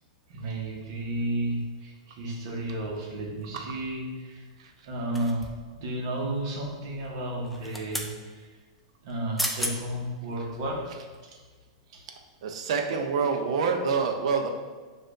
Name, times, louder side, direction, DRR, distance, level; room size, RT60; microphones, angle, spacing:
voice 1, 0.3-4.4 4.9-5.5 5.8-8.5 9.0-10.8 11.9-12.0, right 1 dB, 50° right, -1 dB, 1.0 m, -32 dB
sound 1, 5.1-5.7 7.4-8.1 9.1-9.2 9.4-9.8 10.3-10.4, equal, ahead, 0.3 m, -32 dB
voice 2, 12.4-14.5, right 5 dB, 65° right, 4 dB, 0.6 m, -26 dB
6.5 x 2.5 x 2.5 m, 1.4 s
supercardioid pair, 160°, 3 cm